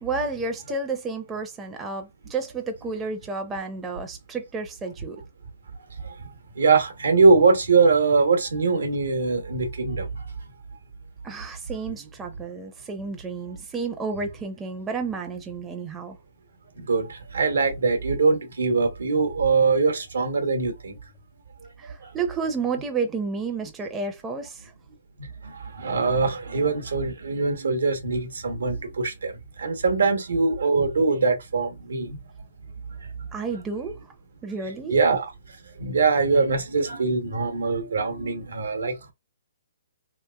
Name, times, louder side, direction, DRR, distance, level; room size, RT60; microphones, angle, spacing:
voice 1, 0.0-5.2 11.2-16.2 21.8-24.7 33.3-34.0 34.4-35.0, right 4 dB, 15° right, 0.4 m, -31 dB
voice 2, 6.6-10.1 16.8-21.0 25.2-29.3 29.6-32.2 34.9-35.3 35.8-39.1, right 4 dB, 85° right, 0.9 m, -22 dB
3.0 x 2.9 x 2.2 m
hypercardioid pair, 150°, 0 cm